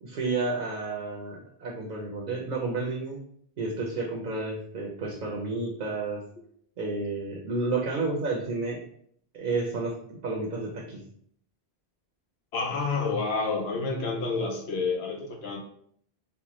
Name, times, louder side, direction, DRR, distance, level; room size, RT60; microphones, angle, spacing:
voice 1, 0.0-3.2 3.6-6.2 6.8-8.8 9.3-11.0, right 3 dB, 55° right, -1 dB, 0.7 m, -31 dB
voice 2, 12.5-15.6, left 4 dB, 80° left, 1 dB, 1.0 m, -29 dB
4.3 x 2.2 x 3.0 m, 0.64 s
omnidirectional pair, 1.1 m